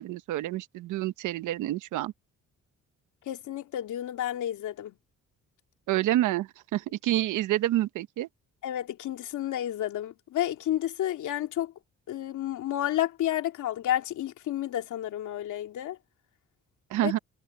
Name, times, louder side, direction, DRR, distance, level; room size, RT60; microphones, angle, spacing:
voice 1, 0.0-2.1 5.9-8.3 16.9-17.2, right 14 dB, 90° right, 1.1 m, -28 dB
voice 2, 3.3-4.9 8.6-11.7 12.1-16.0 17.0-17.1, left 12 dB, 80° left, 2.6 m, -31 dB
cardioid pair, 90°, 30 cm